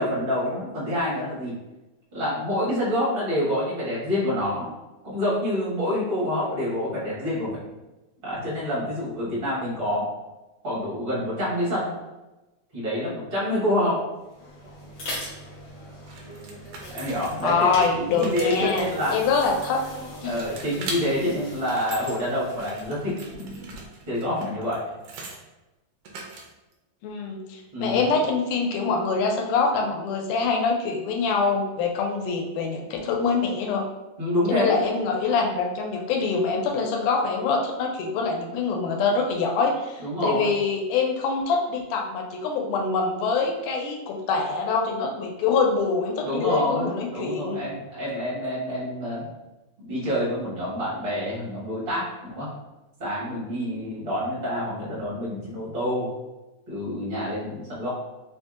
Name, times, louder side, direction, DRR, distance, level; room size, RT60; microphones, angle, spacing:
voice 1, 0.0-1.6 2.1-4.7 5.0-7.6 8.2-10.1 10.6-11.9 12.7-14.0 16.9-17.7 18.0-19.2 20.2-23.8 24.1-24.8 27.7-28.0 34.2-34.8 40.0-40.5 46.2-49.2 49.8-52.5 53.0-56.1 56.7-57.9, left 1 dB, 60° right, -9 dB, 0.5 m, -27 dB
sound 1, 14.2-24.0, equal, 65° left, 1.0 m, -41 dB
sound 2, 16.1-17.6 18.0-20.0 20.4-21.0 21.5-22.2 22.5-25.4 26.1-26.7, right 3 dB, 90° right, 1.3 m, -40 dB
voice 2, 17.4-19.8 20.2-20.4 27.0-33.8 34.5-47.6, left 4 dB, 85° left, 2 dB, 2.0 m, -25 dB
4.8 x 2.6 x 2.4 m, 1.1 s
omnidirectional pair, 3.5 m